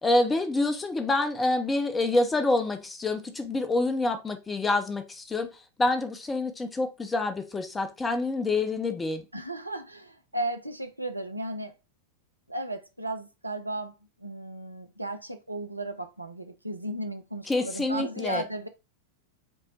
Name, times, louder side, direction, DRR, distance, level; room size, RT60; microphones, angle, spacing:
voice 1, 0.0-5.5 5.8-9.3 17.5-18.4, left 2 dB, 15° left, 0.7 m, -27 dB
voice 2, 9.3-11.7 12.5-18.7, right 1 dB, 85° right, 0.5 m, -35 dB
5.4 x 2.2 x 4.2 m
figure-of-eight pair, 90°, 0 cm